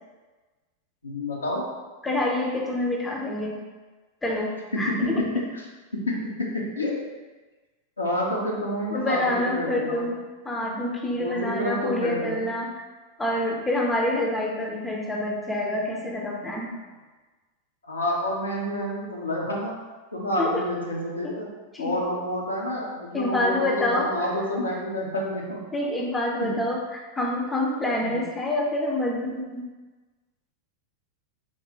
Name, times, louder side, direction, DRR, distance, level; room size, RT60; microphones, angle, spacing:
voice 1, 1.0-1.6 4.7-5.6 5.9-7.0 8.0-10.0 10.6-10.8 11.2-12.5 17.8-19.8 20.1-21.5 21.8-25.6 26.4-26.5 28.0-28.2, left 1 dB, 80° left, -3 dB, 0.9 m, -29 dB
voice 2, 2.0-3.6 4.2-5.1 8.9-10.2 10.4-12.7 13.2-16.8 20.4-20.7 21.2-21.4 21.7-22.0 23.1-24.3 25.7-29.6, left 1 dB, 10° left, -1 dB, 0.6 m, -27 dB
4.5 x 3.9 x 3.0 m, 1.3 s
figure-of-eight pair, 90°, 0 cm